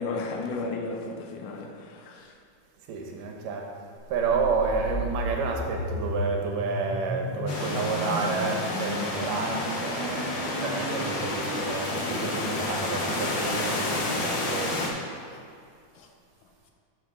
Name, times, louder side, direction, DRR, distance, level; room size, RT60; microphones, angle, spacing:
voice 1, 0.0-2.4 9.9-10.1 10.5-10.6 16.0-16.1, left 3 dB, 80° left, 2.2 m, -34 dB
voice 2, 2.9-15.3, right 4 dB, 80° right, 2.6 m, -30 dB
sound 1, 4.1-14.0, equal, 35° left, 2.9 m, -36 dB
sound 2, 7.5-14.9, left 2 dB, 55° left, 1.3 m, -30 dB
12.5 x 6.3 x 3.8 m
omnidirectional pair, 3.8 m